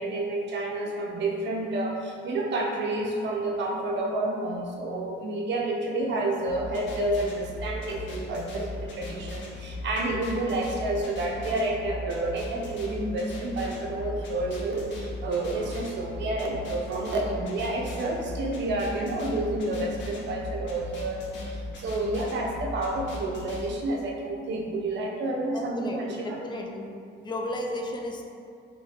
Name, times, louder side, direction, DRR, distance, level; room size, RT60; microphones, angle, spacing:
voice 1, 0.0-26.4, right 2 dB, 65° right, -1 dB, 0.5 m, -29 dB
sound 1, 6.5-23.6, left 1 dB, 70° left, 0.6 m, -38 dB
voice 2, 25.5-26.0 26.4-26.9 27.2-28.2, left 1 dB, 25° left, 1 dB, 0.3 m, -33 dB
3.1 x 2.2 x 2.8 m, 2.4 s
cardioid pair, 90°, 20 cm